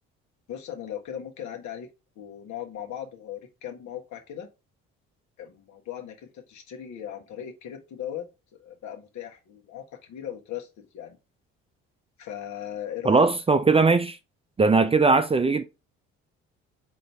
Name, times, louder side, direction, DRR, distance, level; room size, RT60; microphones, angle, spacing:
voice 1, 0.5-1.9 2.1-4.5 5.4-8.3 8.6-11.2 12.2-13.3, left 10 dB, 65° left, 1.4 m, -38 dB
voice 2, 13.1-14.2 14.6-15.6, right 4 dB, 20° right, 0.5 m, -19 dB
4.0 x 3.0 x 4.5 m
supercardioid pair, 65°, 31 cm